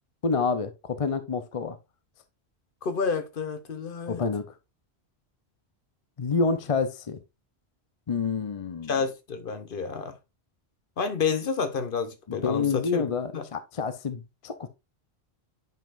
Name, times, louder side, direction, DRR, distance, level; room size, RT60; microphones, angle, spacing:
voice 1, 0.2-1.8 4.1-4.5 6.2-7.2 8.1-8.9 12.3-14.7, left 4 dB, 40° left, 0.6 m, -28 dB
voice 2, 2.8-4.2 8.9-10.2 11.0-13.5, left 5 dB, 55° left, 1.0 m, -30 dB
9.2 x 5.4 x 2.5 m
omnidirectional pair, 1.1 m